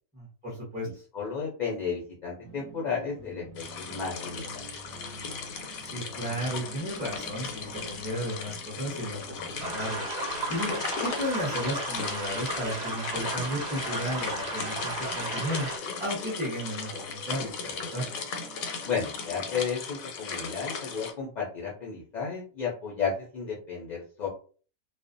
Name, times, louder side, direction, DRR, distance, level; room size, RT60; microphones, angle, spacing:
voice 1, 0.1-0.9 5.8-10.1 10.5-15.7 16.0-18.0, equal, 5° right, -5 dB, 0.6 m, -34 dB
voice 2, 0.8-4.6 18.8-24.3, left 6 dB, 55° left, -4 dB, 0.5 m, -33 dB
sound 1, 2.4-19.6, right 3 dB, 75° right, 1.0 m, -49 dB
sound 2, 3.5-21.1, left 5 dB, 85° left, 1.0 m, -37 dB
sound 3, 9.6-15.8, right 1 dB, 50° right, 0.5 m, -34 dB
2.4 x 2.1 x 2.5 m, 0.39 s
omnidirectional pair, 1.4 m